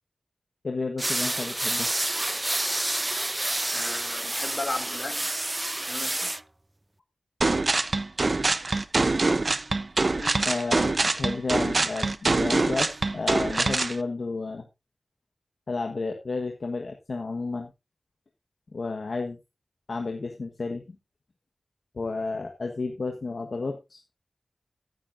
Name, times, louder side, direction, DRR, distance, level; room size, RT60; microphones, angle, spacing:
voice 1, 0.6-1.9 10.5-14.7 15.7-17.7 18.7-19.4 19.9-21.0 21.9-24.0, left 3 dB, 70° left, 1.3 m, -32 dB
sound 1, 1.0-6.4, right 1 dB, 25° right, 0.5 m, -29 dB
voice 2, 3.7-5.3 5.9-6.3 7.6-7.7 8.3-8.5 10.1-10.5, left 2 dB, 55° left, 2.8 m, -36 dB
sound 2, 7.4-14.0, right 3 dB, 55° right, 0.8 m, -24 dB
15.5 x 9.6 x 2.6 m
wide cardioid pair, 50°, 0 cm